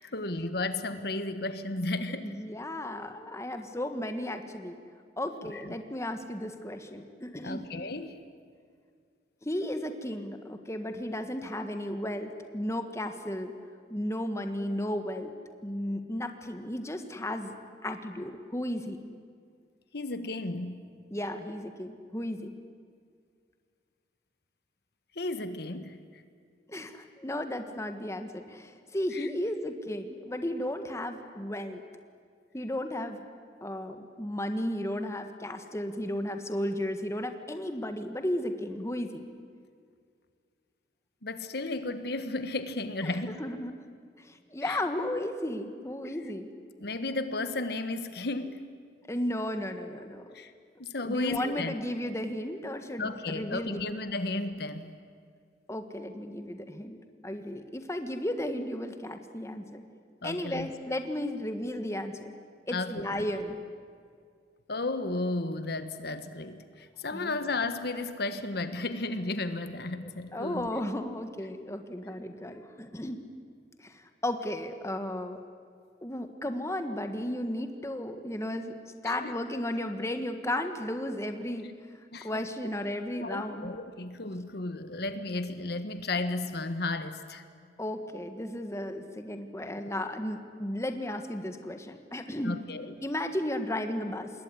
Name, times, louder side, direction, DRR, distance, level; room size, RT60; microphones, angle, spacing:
voice 1, 0.1-2.3 5.4-5.8 7.4-8.2 19.9-20.8 25.1-26.2 29.1-29.3 41.2-43.5 44.6-44.8 46.8-48.7 50.3-50.5 50.8-51.7 53.0-54.9 60.2-60.7 62.7-63.3 64.7-70.7 79.0-79.4 82.1-82.4 83.2-87.4 92.4-92.9, left 2 dB, 60° left, 10 dB, 1.4 m, -34 dB
voice 2, 2.2-4.8 5.2-7.6 9.4-13.5 13.9-15.3 15.6-17.5 17.8-19.1 21.1-22.5 26.7-31.8 32.5-33.2 33.6-39.3 43.0-43.7 44.2-46.5 49.1-50.3 51.0-53.8 55.7-57.0 57.2-59.8 60.2-62.3 62.7-63.6 67.1-67.4 70.0-73.2 73.8-75.4 76.0-81.7 82.2-83.7 87.8-92.6 93.0-94.3, left 1 dB, 15° left, 7 dB, 1.6 m, -34 dB
26.5 x 21.5 x 9.8 m, 2.1 s
head